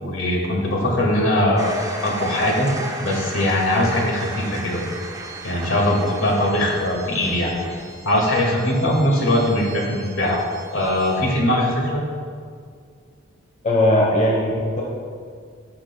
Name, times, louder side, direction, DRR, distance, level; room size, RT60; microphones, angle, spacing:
voice 1, 0.0-1.7 2.0-2.7 3.0-4.8 5.4-7.5 8.0-10.4 10.7-12.0, left 1 dB, 75° left, -2 dB, 1.9 m, -21 dB
sound 1, 1.6-11.2, right 2 dB, 15° right, 0.6 m, -36 dB
voice 2, 13.6-14.8, left 1 dB, 35° left, -3 dB, 1.0 m, -18 dB
15.0 x 6.3 x 2.2 m, 2.1 s
head